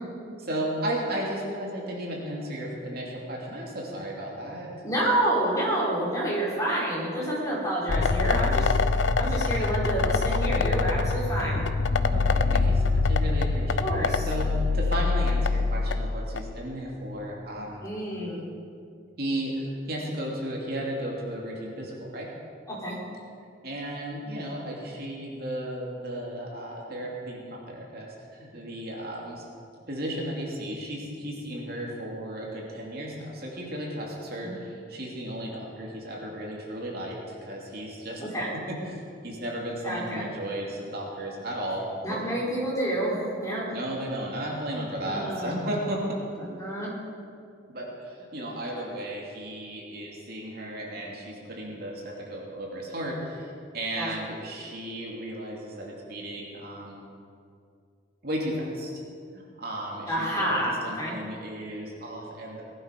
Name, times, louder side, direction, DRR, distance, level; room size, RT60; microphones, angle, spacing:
voice 1, 0.4-4.7 12.1-17.9 19.2-22.3 23.6-29.4 29.9-38.2 38.5-42.2 43.7-46.2 47.7-57.0 58.2-58.9 59.3-60.6 60.8-62.6, right 1 dB, 55° right, -2 dB, 3.0 m, -34 dB
voice 2, 4.8-11.6 13.8-14.3 17.8-18.4 22.7-23.0 34.4-34.5 38.2-38.5 39.8-40.3 42.0-43.6 45.0-45.6 46.6-46.9 54.0-54.1 60.1-61.1, right 1 dB, 20° left, -6 dB, 4.8 m, -28 dB
sound 1, 7.9-16.5, left 3 dB, 85° left, 0.6 m, -24 dB
19.5 x 11.5 x 5.4 m, 2.4 s
head